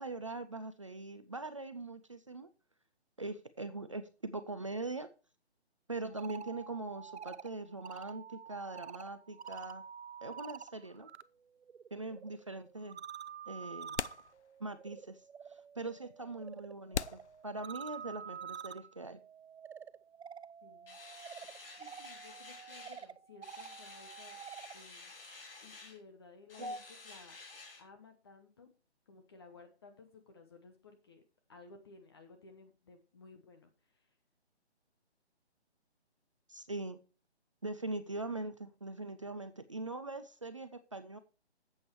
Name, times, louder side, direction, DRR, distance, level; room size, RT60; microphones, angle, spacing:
voice 1, 0.0-2.5 3.2-5.1 5.9-9.8 10.2-11.1 11.9-13.0 13.5-13.9 14.6-15.2 15.5-19.2 26.6-26.8 36.5-37.0 37.6-41.2, right 2 dB, 30° right, 10 dB, 0.5 m, -42 dB
sound 1, 6.0-11.2 11.5-24.8, right 7 dB, 70° right, 0.7 m, -49 dB
sound 2, 12.1-12.2 13.3-13.4 13.9-14.9 15.2-15.3 16.0-16.1 16.9-18.2, left 7 dB, 85° left, 0.6 m, -40 dB
voice 2, 20.6-21.0 21.8-24.4 24.7-25.1 25.6-27.4 27.8-28.7 29.1-31.2 31.5-34.2, left 4 dB, 20° left, 5 dB, 0.9 m, -57 dB
sound 3, 20.9-23.1 23.4-26.0 26.5-27.8, left 3 dB, 55° left, 2.9 m, -52 dB
8.4 x 8.1 x 4.6 m, 0.33 s
hypercardioid pair, 165°, 33 cm